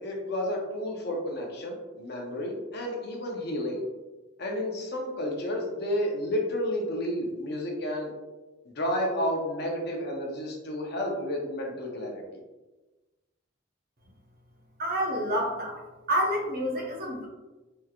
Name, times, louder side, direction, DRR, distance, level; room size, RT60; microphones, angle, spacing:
voice 1, 0.0-3.8 4.4-8.1 8.8-12.4, equal, 55° left, 0 dB, 0.8 m, -31 dB
voice 2, 14.8-15.8 16.1-17.3, equal, 50° right, -1 dB, 0.9 m, -28 dB
4.4 x 3.2 x 2.4 m, 1.1 s
head